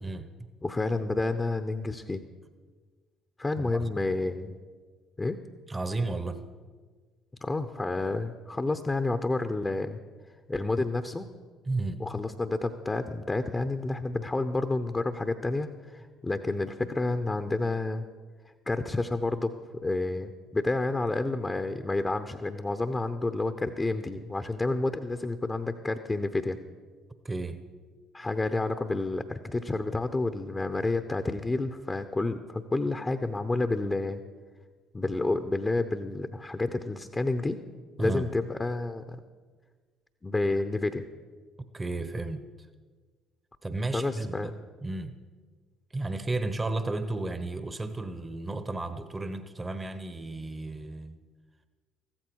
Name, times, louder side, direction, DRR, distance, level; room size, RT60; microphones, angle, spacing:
voice 1, 0.0-0.5 3.6-4.0 5.7-6.4 11.7-12.0 27.2-27.6 38.0-38.3 41.7-42.4 43.6-44.5 44.8-45.1 45.9-51.2, right 2 dB, 20° right, 10 dB, 1.0 m, -33 dB
voice 2, 0.6-2.2 3.4-4.6 5.2-5.4 7.4-10.0 10.5-11.3 12.0-18.0 18.7-26.6 28.1-34.2 34.9-37.6 38.0-39.2 40.2-41.1 43.9-44.5, left 2 dB, 20° left, 8 dB, 0.8 m, -29 dB
14.5 x 13.5 x 4.7 m, 1.5 s
hypercardioid pair, 60°, 0 cm